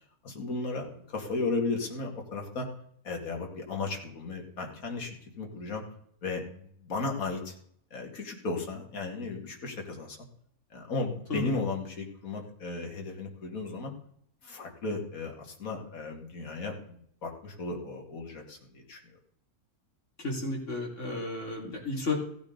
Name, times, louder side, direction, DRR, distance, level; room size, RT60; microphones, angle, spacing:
voice 1, 0.2-2.7 3.0-5.8 6.2-7.6 7.9-10.2 10.7-13.9 14.4-19.0, left 3 dB, 65° left, 1 dB, 2.5 m, -35 dB
voice 2, 20.2-22.1, left 2 dB, 50° left, 0 dB, 3.1 m, -32 dB
16.0 x 8.8 x 3.9 m, 0.66 s
omnidirectional pair, 1.6 m